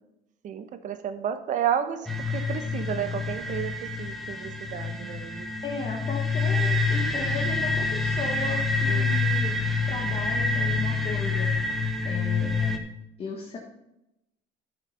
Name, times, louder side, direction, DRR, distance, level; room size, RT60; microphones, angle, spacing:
voice 1, 0.4-5.5 8.8-9.1, right 9 dB, 50° right, 10 dB, 0.9 m, -32 dB
sound 1, 2.1-12.8, left 3 dB, ahead, 1.0 m, -27 dB
voice 2, 5.6-9.6 9.9-11.5 12.0-12.8 13.2-13.6, left 4 dB, 35° left, -1 dB, 1.4 m, -36 dB
11.0 x 5.9 x 5.6 m, 0.88 s
cardioid pair, 130°, 17 cm